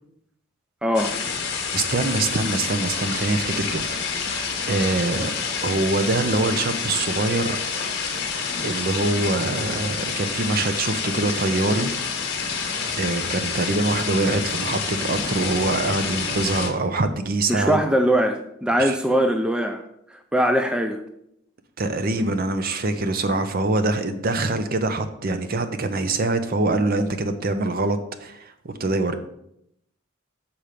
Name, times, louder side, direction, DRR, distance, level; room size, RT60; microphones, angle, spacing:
voice 1, 0.8-1.2 17.5-19.8 20.3-21.0, equal, 5° right, 6 dB, 0.4 m, -21 dB
sound 1, 0.9-16.7, left 5 dB, 55° left, 1.3 m, -28 dB
voice 2, 1.7-4.1 4.7-5.3 5.6-7.6 8.6-11.9 12.9-17.8 18.8-19.0 21.8-29.2, right 2 dB, 45° right, 9 dB, 0.6 m, -24 dB
6.7 x 4.4 x 5.1 m, 0.77 s
head